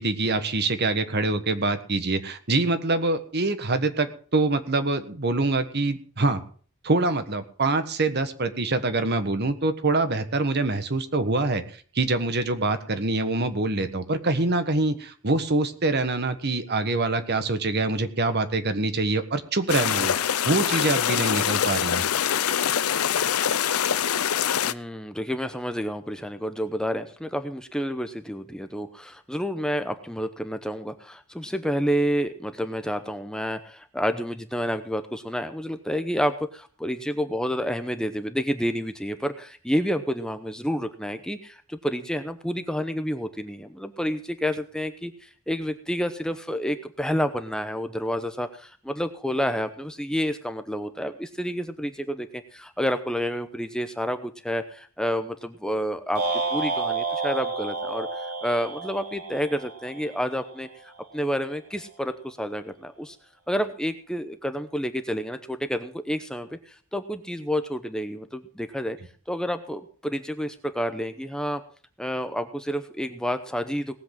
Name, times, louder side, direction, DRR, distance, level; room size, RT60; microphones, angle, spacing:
voice 1, 0.0-6.4 6.8-11.6 11.9-20.1 20.4-22.0, right 2 dB, 50° right, 10 dB, 1.4 m, -25 dB
sound 1, 19.7-24.7, left 9 dB, 80° left, 0.6 m, -24 dB
voice 2, 24.6-56.2 56.5-63.2 63.5-69.0 69.3-71.6 72.0-74.0, equal, 5° left, 8 dB, 0.8 m, -29 dB
sound 2, 56.2-60.5, right 3 dB, 85° right, 3.4 m, -30 dB
18.5 x 8.0 x 6.0 m, 0.43 s
head